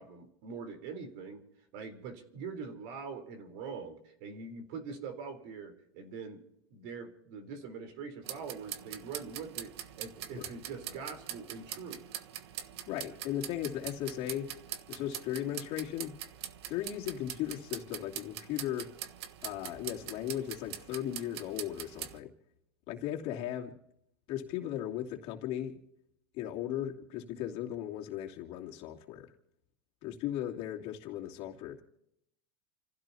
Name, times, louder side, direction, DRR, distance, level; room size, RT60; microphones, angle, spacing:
voice 1, 0.0-1.4 1.7-6.4 6.7-12.0, right 5 dB, 55° right, 3.8 m, -43 dB
sound 1, 8.2-22.2, right 11 dB, 75° right, 1.3 m, -43 dB
voice 2, 12.9-14.5 14.9-16.2 16.7-18.9 19.4-22.3 22.9-23.7 24.3-25.8 26.3-29.3 30.0-31.8, left 11 dB, 45° left, 2.8 m, -37 dB
29.5 x 16.0 x 2.8 m
supercardioid pair, 135°, 14 cm